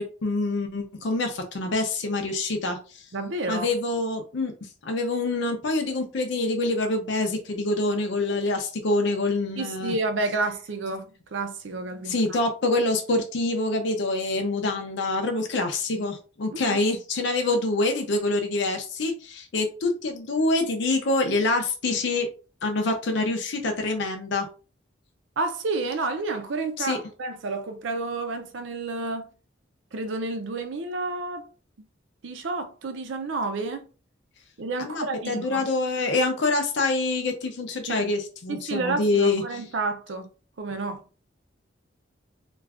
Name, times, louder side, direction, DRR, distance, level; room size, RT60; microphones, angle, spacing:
voice 1, 0.0-3.0 3.5-4.5 4.8-9.9 12.1-22.3 22.6-24.5 26.8-27.0 34.8-39.6, left 2 dB, 70° left, 0.5 m, -26 dB
voice 2, 3.1-3.7 9.6-12.4 16.5-16.8 21.9-22.0 25.4-29.3 29.9-31.5 32.2-33.9 34.6-35.6 37.9-38.1 38.5-40.3 40.6-41.0, right 3 dB, 75° right, 0.5 m, -30 dB
2.4 x 2.3 x 3.4 m
head